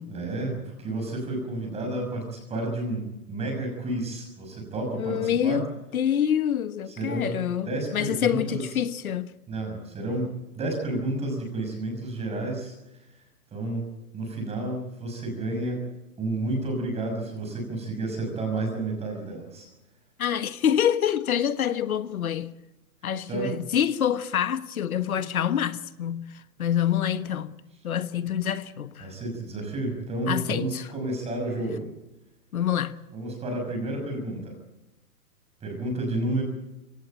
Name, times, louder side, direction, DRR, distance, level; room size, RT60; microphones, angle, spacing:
voice 1, 0.1-5.6 7.0-7.3 7.7-8.6 9.5-10.3 10.6-13.2 13.5-13.9 14.1-15.8 16.2-19.7 23.3-23.6 29.0-31.9 33.1-34.6 35.6-36.4, right 2 dB, 10° right, 5.7 m, -31 dB
voice 2, 4.9-5.7 5.9-9.3 20.2-22.5 23.0-27.5 27.8-29.1 30.3-30.9 32.5-33.0, left 9 dB, 60° left, 1.4 m, -26 dB
22.5 x 18.0 x 8.8 m
hypercardioid pair, 140°, 49 cm